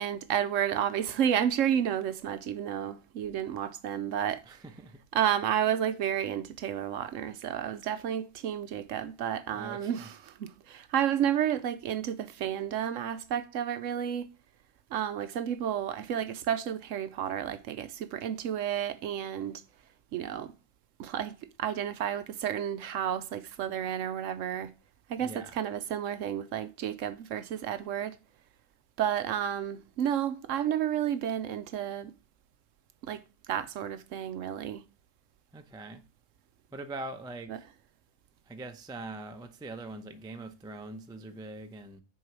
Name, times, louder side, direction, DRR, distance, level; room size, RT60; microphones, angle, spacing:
voice 1, 0.0-4.4 5.1-14.3 14.9-19.6 20.1-20.5 21.0-24.7 25.1-28.2 29.0-32.1 33.0-33.2 33.5-34.8 37.5-37.6, right 9 dB, 70° right, 0.9 m, -31 dB
voice 2, 4.5-5.0 9.5-10.1 25.2-25.5 35.5-36.0 36.7-37.7 38.5-42.0, right 2 dB, 5° right, 0.3 m, -42 dB
6.2 x 4.7 x 5.9 m
omnidirectional pair, 1.5 m